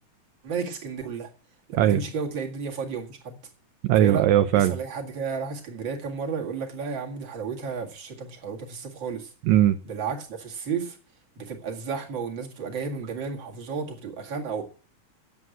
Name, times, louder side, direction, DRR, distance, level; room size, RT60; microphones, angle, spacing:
voice 1, 0.4-1.3 1.7-3.4 4.0-4.2 4.5-9.3 9.9-11.0 11.4-14.6, right 5 dB, 40° right, 2.4 m, -32 dB
voice 2, 3.8-4.8 9.4-9.8, right 12 dB, 75° right, 1.8 m, -19 dB
9.5 x 7.6 x 7.8 m
omnidirectional pair, 3.5 m